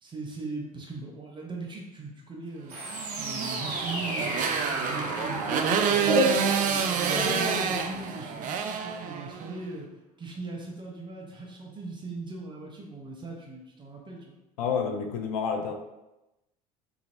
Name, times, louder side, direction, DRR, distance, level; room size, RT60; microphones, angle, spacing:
voice 1, 0.0-2.8 3.2-4.4 4.7-9.9 10.2-14.3, right 3 dB, 25° right, -1 dB, 0.8 m, -39 dB
sound 1, 2.7-8.4, right 1 dB, 85° right, 0.6 m, -31 dB
Motorcycle, 2.9-9.6, right 7 dB, 45° right, 0.4 m, -28 dB
voice 2, 14.6-15.7, left 6 dB, 75° left, 5 dB, 0.4 m, -29 dB
2.9 x 2.6 x 2.5 m, 0.98 s
figure-of-eight pair, 60°, 19 cm